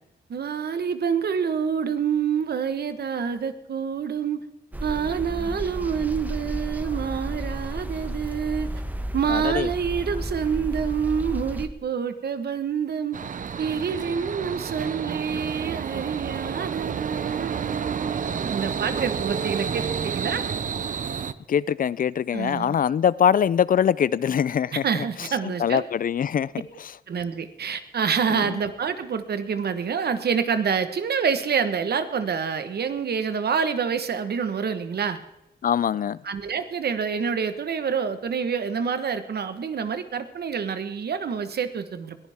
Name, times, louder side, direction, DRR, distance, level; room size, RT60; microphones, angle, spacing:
voice 1, 0.3-4.4 4.8-8.7 9.1-13.2 13.6-20.4 22.3-22.8 24.7-25.8 27.1-35.2 36.2-42.2, right 6 dB, 65° right, 1.3 m, -27 dB
sound 1, 4.7-11.7, right 1 dB, 10° right, 1.1 m, -32 dB
voice 2, 9.3-9.7 21.5-24.8 25.6-26.5 28.3-28.4 35.6-36.2, left 8 dB, 55° left, 0.4 m, -23 dB
sound 2, 13.1-21.3, right 6 dB, 50° right, 0.7 m, -30 dB
21.5 x 14.5 x 3.6 m
wide cardioid pair, 110°, 17 cm